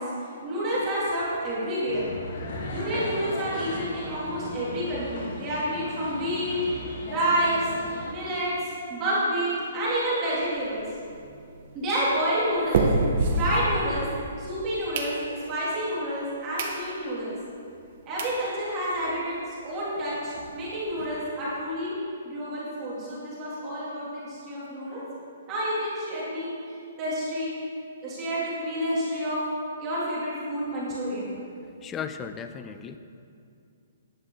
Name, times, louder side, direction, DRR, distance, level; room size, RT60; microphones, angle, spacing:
voice 1, 0.0-2.1 2.7-6.6 7.1-7.7 8.1-8.6 8.9-10.8 11.7-12.9 13.4-14.1 14.4-17.4 18.1-21.9 22.2-25.0 25.5-27.5 28.0-29.4 29.8-31.4, equal, 20° right, -8 dB, 3.1 m, -29 dB
sound 1, 1.9-8.1, left 1 dB, 50° left, 2.0 m, -37 dB
sound 2, 10.4-14.3 14.7-15.6 16.1-16.2 16.5-16.8 17.2-17.3 17.9-18.0 18.2-18.4 18.8-18.9 19.1-19.2 19.5-19.6 19.9-21.1, right 2 dB, 45° right, 1.5 m, -29 dB
voice 2, 31.8-33.0, left 7 dB, 15° left, 9 dB, 0.5 m, -36 dB
12.5 x 10.5 x 4.0 m, 2.5 s
hypercardioid pair, 165°, 0 cm